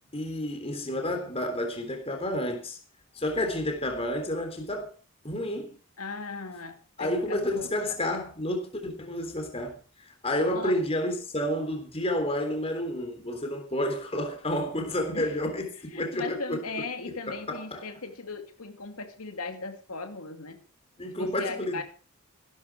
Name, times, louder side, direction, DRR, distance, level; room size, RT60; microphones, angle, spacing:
voice 1, 0.1-2.8 3.1-4.9 5.2-5.8 7.0-16.6 17.1-17.9 21.0-21.8, left 1 dB, 25° left, 3.4 m, -30 dB
voice 2, 6.0-7.7 10.5-10.8 15.1-15.5 15.9-20.6 21.2-21.8, left 3 dB, 80° left, 2.3 m, -38 dB
16.5 x 12.5 x 4.7 m
head